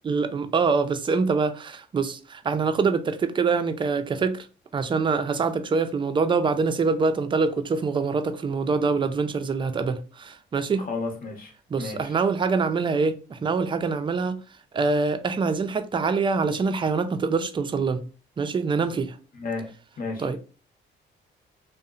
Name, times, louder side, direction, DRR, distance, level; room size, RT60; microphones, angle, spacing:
voice 1, 0.0-4.5 4.7-10.8 11.7-14.4 14.7-18.0 18.4-19.2 20.2-20.4, right 4 dB, 25° right, 0.3 m, -25 dB
voice 2, 10.8-11.5 11.8-12.2 19.3-20.3, left 3 dB, 45° left, 0.9 m, -33 dB
2.7 x 2.0 x 2.4 m
cardioid pair, 90°, 20 cm